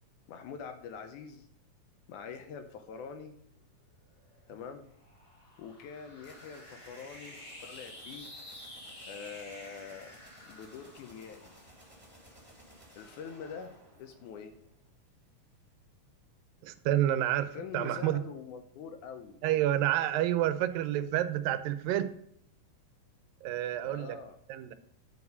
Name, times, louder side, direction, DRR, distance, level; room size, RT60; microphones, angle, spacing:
voice 1, 0.3-1.5 2.1-3.4 4.5-4.9 5.6-8.3 9.1-10.2 10.5-11.5 13.0-13.7 14.0-14.5 17.5-19.4 23.9-24.4, left 6 dB, 75° left, 7 dB, 1.9 m, -44 dB
sound 1, 4.1-12.8, left 1 dB, 35° left, 1.8 m, -51 dB
sound 2, 6.2-14.8, right 1 dB, 5° right, 1.8 m, -57 dB
voice 2, 16.6-18.2 19.4-22.1 23.4-24.2 24.5-24.7, right 12 dB, 90° right, 12 dB, 2.3 m, -29 dB
9.4 x 4.9 x 5.4 m, 0.69 s
omnidirectional pair, 3.9 m